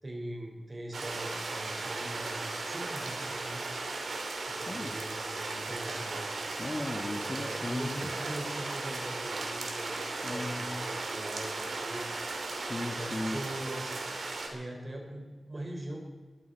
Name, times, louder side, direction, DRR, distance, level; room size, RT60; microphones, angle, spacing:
voice 1, 0.0-3.7 4.5-6.4 7.3-12.3 12.9-14.0 14.5-16.0, right 1 dB, 35° right, 0 dB, 5.5 m, -41 dB
sound 1, 0.9-14.5, right 3 dB, 75° right, 2.8 m, -36 dB
voice 2, 6.6-7.9 10.2-10.9 12.5-13.4, left 2 dB, 35° left, 6 dB, 1.5 m, -36 dB
20.5 x 14.0 x 4.6 m, 1.4 s
cardioid pair, 60°, 0 cm